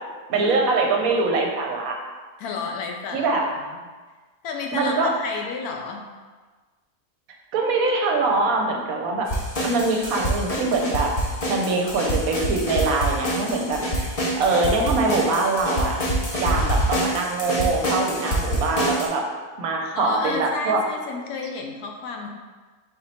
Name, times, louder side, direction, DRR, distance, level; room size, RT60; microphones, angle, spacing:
voice 1, 0.3-1.9 3.1-3.4 4.7-5.1 7.5-9.3 9.6-11.1 11.5-14.1 14.4-16.0 16.4-19.2 19.6-20.8, right 3 dB, 70° right, 1 dB, 1.0 m, -23 dB
voice 2, 2.4-3.8 4.4-6.1 19.9-22.3, left 4 dB, 75° left, 2 dB, 1.1 m, -31 dB
sound 1, 9.3-19.1, right 1 dB, 35° left, 0.6 m, -26 dB
4.3 x 3.0 x 4.1 m, 1.4 s
omnidirectional pair, 1.6 m